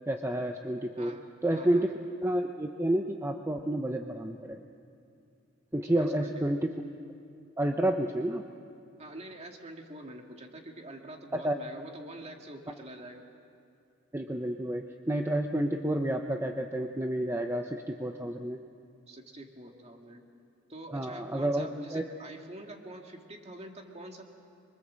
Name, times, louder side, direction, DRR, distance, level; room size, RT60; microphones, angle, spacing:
voice 1, 0.1-1.2 1.4-1.9 2.2-4.6 5.7-6.7 7.6-8.4 11.4-11.6 14.1-18.6 20.9-22.0, right 1 dB, 15° right, 4 dB, 0.8 m, -30 dB
voice 2, 1.5-1.9 5.8-6.4 9.0-13.2 19.1-20.2 20.7-24.2, right 1 dB, 35° right, 2 dB, 2.2 m, -46 dB
25.5 x 23.5 x 7.6 m, 2.5 s
head